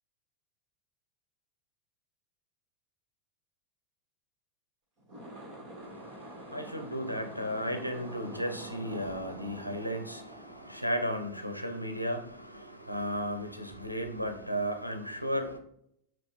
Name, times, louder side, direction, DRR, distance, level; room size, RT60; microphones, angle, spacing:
sound 1, 5.0-11.5, right 1 dB, 40° right, 1.7 m, -47 dB
voice 1, 5.8-15.6, equal, 90° left, 0.6 m, -35 dB
5.5 x 2.5 x 3.0 m
figure-of-eight pair, 85°, 0 cm